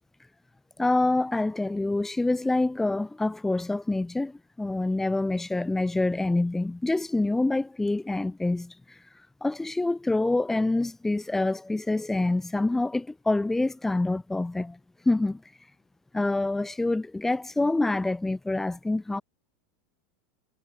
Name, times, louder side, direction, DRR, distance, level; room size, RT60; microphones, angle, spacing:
voice 1, 0.8-8.7 9.4-14.8 15.1-15.4 16.1-19.2, left 2 dB, 5° left, 0.4 m, -26 dB
hypercardioid pair, 110°, 5 cm